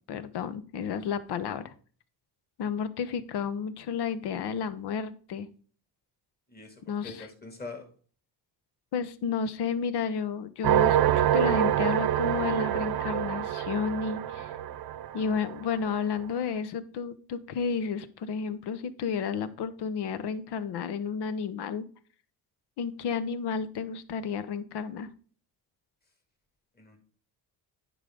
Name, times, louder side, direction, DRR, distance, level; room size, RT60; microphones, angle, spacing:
voice 1, 0.1-1.7 2.6-5.5 6.9-7.3 8.9-14.5 15.1-21.8 22.8-25.1, left 6 dB, 75° left, 14 dB, 1.0 m, -32 dB
voice 2, 6.5-7.9 26.8-27.0, left 3 dB, 25° left, 4 dB, 2.6 m, -43 dB
sound 1, 10.6-16.0, right 11 dB, 65° right, 0.8 m, -26 dB
10.0 x 5.1 x 3.8 m, 0.42 s
cardioid pair, 115°, 40 cm